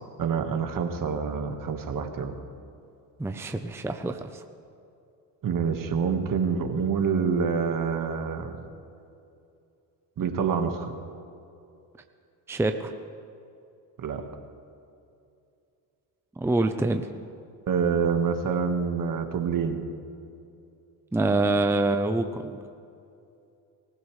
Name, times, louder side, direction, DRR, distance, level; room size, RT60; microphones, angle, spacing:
voice 1, 0.2-2.3 5.4-8.6 10.2-10.9 14.0-14.3 17.7-19.9, right 6 dB, 50° right, 5 dB, 1.7 m, -27 dB
voice 2, 3.2-4.4 12.5-12.9 16.4-17.1 21.1-22.5, right 2 dB, 5° right, 6 dB, 0.7 m, -26 dB
24.5 x 15.5 x 3.3 m, 2.6 s
cardioid pair, 90°, 42 cm